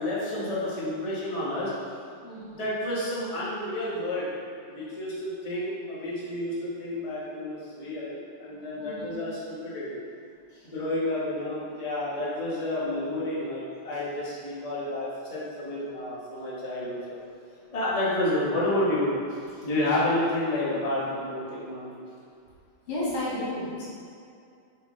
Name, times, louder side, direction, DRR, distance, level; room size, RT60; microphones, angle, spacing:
voice 1, 0.0-1.7 2.5-4.3 4.7-10.0 10.6-17.2 17.7-19.1 19.6-22.0, left 1 dB, 20° left, -8 dB, 1.1 m, -30 dB
voice 2, 2.2-2.7 8.8-9.1 10.5-10.7 19.5-19.7 22.9-23.8, left 1 dB, 85° left, -8 dB, 2.7 m, -33 dB
7.3 x 4.2 x 3.2 m, 2.4 s
omnidirectional pair, 2.3 m